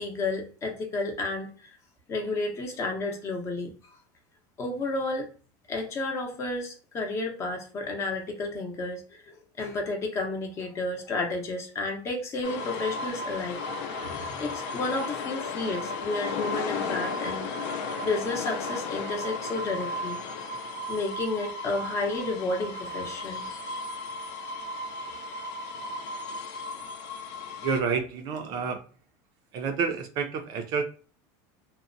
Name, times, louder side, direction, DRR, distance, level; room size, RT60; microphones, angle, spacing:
voice 1, 0.0-1.8 2.1-3.7 4.6-5.3 5.7-9.2 9.6-13.6 14.0-17.5 18.0-20.2 20.9-23.5, left 2 dB, 30° left, 2 dB, 0.6 m, -31 dB
sound 1, 12.4-27.8, left 3 dB, 65° left, 0.5 m, -34 dB
voice 2, 27.6-28.8 29.5-30.8, right 5 dB, 45° right, 5 dB, 0.4 m, -29 dB
2.7 x 2.1 x 2.5 m, 0.39 s
supercardioid pair, 150°, 10 cm